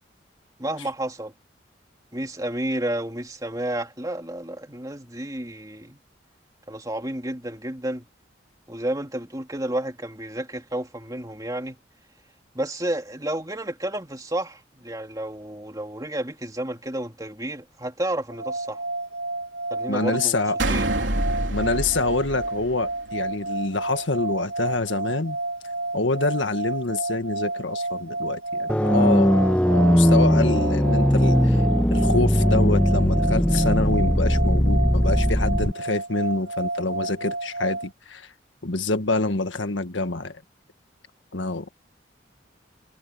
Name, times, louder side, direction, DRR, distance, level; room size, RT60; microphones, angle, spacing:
voice 1, 0.6-1.3 2.1-6.0 6.7-8.1 8.7-11.8 12.5-18.8 19.7-20.4 20.7-20.9, right 1 dB, 20° right, 2.6 m, -31 dB
sound 1, 18.3-37.9, right 2 dB, 70° right, 6.3 m, -31 dB
voice 2, 19.9-20.6 21.5-25.4 25.9-31.6 31.9-38.3 38.6-40.4 41.3-41.8, left 3 dB, 85° left, 1.7 m, -26 dB
sound 2, 20.6-23.2, right 1 dB, 90° right, 3.6 m, -27 dB
sound 3, 28.7-35.7, equal, 5° left, 1.0 m, -19 dB
head